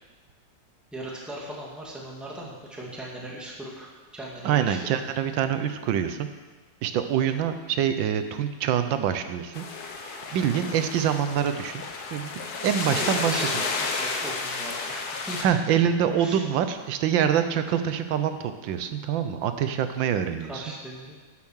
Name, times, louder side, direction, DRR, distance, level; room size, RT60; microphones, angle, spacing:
voice 1, 0.9-4.8 11.0-11.1 12.9-15.4 16.2-16.4 17.3-17.4 19.7-19.8 20.4-21.1, right 1 dB, ahead, -4 dB, 1.8 m, -38 dB
voice 2, 4.4-6.3 6.8-9.6 10.0-11.8 12.1-13.6 15.4-20.6, right 9 dB, 85° right, 9 dB, 1.5 m, -25 dB
sound 1, 9.5-15.4, left 4 dB, 60° left, 1.5 m, -32 dB
11.5 x 7.1 x 6.3 m, 1.4 s
omnidirectional pair, 2.0 m